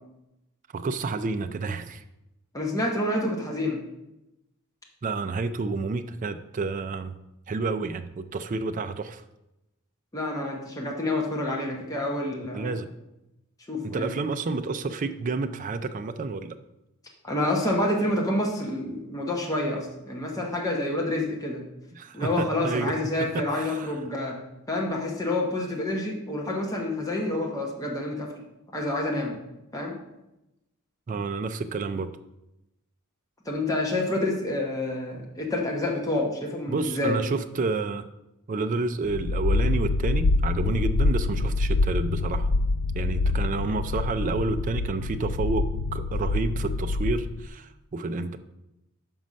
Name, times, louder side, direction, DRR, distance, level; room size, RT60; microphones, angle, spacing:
voice 1, 0.7-2.0 5.0-7.1 7.5-9.2 12.5-12.9 13.8-16.6 21.9-23.0 23.3-23.9 31.1-32.1 36.7-38.0 38.5-42.5 43.0-48.4, right 3 dB, 35° right, 8 dB, 0.3 m, -29 dB
voice 2, 2.5-3.8 10.1-12.8 13.7-14.1 17.2-21.6 22.1-24.4 24.7-28.4 28.7-29.4 29.7-30.0 33.5-37.2, left 1 dB, 15° left, -1 dB, 1.0 m, -28 dB
sound 1, 39.0-47.5, left 3 dB, 75° left, 0.4 m, -26 dB
5.5 x 5.2 x 6.1 m, 0.92 s
head